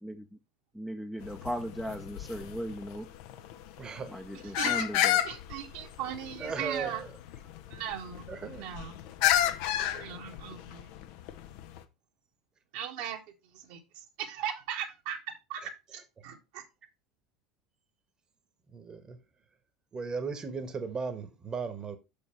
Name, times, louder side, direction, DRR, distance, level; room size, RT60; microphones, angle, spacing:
voice 1, 0.0-0.4 0.7-3.1 4.1-5.2, equal, ahead, 0.8 m, -37 dB
sound 1, 1.2-11.8, left 12 dB, 55° left, 0.7 m, -32 dB
voice 2, 3.8-4.1 6.4-7.1 8.3-8.7 18.7-19.2 19.9-22.0, right 5 dB, 25° right, 1.3 m, -36 dB
voice 3, 4.4-4.9 5.2-7.0 7.7-9.0 9.8-10.9 12.7-15.2 15.5-15.6 15.9-16.6, right 9 dB, 55° right, 1.5 m, -38 dB
6.6 x 5.4 x 4.5 m
figure-of-eight pair, 75°, 3 cm